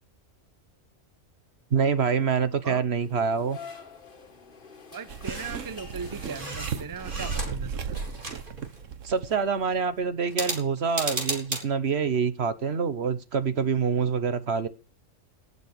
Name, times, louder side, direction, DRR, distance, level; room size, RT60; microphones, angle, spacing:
voice 1, 1.7-3.6 9.0-14.7, right 6 dB, 60° right, 1.3 m, -26 dB
sound 1, 3.0-6.9, left 5 dB, 45° left, 1.8 m, -47 dB
voice 2, 4.9-8.0, right 5 dB, 20° right, 0.7 m, -38 dB
sound 2, 5.1-9.6 9.9-10.0, right 6 dB, 80° right, 1.4 m, -35 dB
sound 3, 5.2-5.6 6.0-7.7 7.9-8.8 10.3-11.6, right 1 dB, 40° right, 4.0 m, -34 dB
18.0 x 6.9 x 6.6 m
omnidirectional pair, 1.3 m